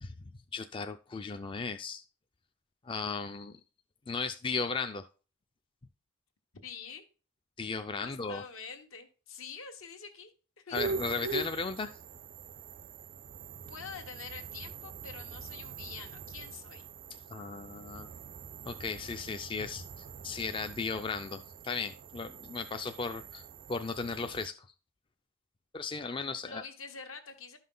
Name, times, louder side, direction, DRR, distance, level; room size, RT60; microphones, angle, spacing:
voice 1, 0.0-2.0 2.8-3.6 4.1-5.1 7.6-8.4 10.7-12.0 17.3-18.1 18.7-24.7 25.7-26.6, left 4 dB, 25° left, 8 dB, 0.4 m, -36 dB
voice 2, 6.5-7.0 8.0-10.3 10.6-10.8 13.7-16.9 26.4-27.6, left 5 dB, 75° left, 5 dB, 1.4 m, -46 dB
sound 1, 10.7-24.5, right 5 dB, 45° right, 0.4 m, -43 dB
12.0 x 5.6 x 3.8 m, 0.35 s
head